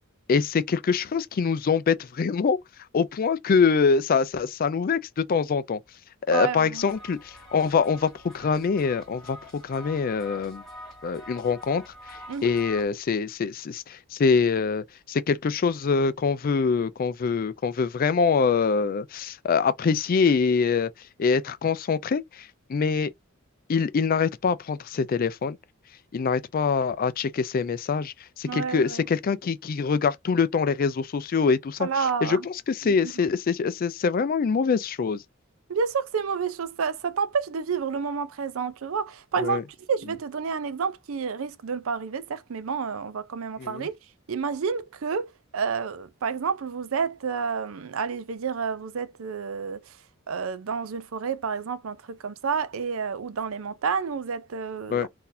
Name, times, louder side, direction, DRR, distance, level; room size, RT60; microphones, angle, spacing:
voice 1, 0.3-2.6 2.9-5.8 6.3-10.6 11.0-11.8 12.1-20.9 21.2-23.1 23.7-25.6 26.1-31.9 32.2-35.2 39.4-39.6 43.6-43.9 54.9-55.1, left 5 dB, 45° left, 0.4 m, -24 dB
voice 2, 6.3-6.9 12.3-12.5 28.5-29.1 31.8-32.5 32.8-33.1 35.7-39.6 39.9-44.0 44.3-50.0 50.3-55.1, right 6 dB, 70° right, 0.5 m, -29 dB
sound 1, 6.8-12.8, equal, ahead, 1.6 m, -45 dB
3.9 x 2.7 x 2.6 m
head